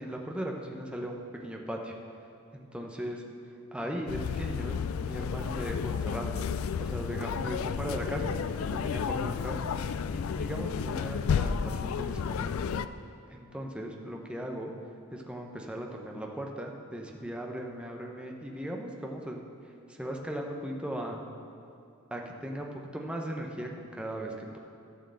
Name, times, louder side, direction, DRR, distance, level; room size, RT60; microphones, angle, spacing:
voice 1, 0.0-2.0 2.5-3.2 3.7-6.4 6.8-12.6 13.3-14.7 15.1-19.4 19.9-21.2 22.1-24.6, right 1 dB, 5° right, 0 dB, 0.8 m, -38 dB
sound 1, 4.1-12.9, left 6 dB, 80° left, 0.3 m, -32 dB
12.5 x 4.6 x 7.6 m, 2.5 s
head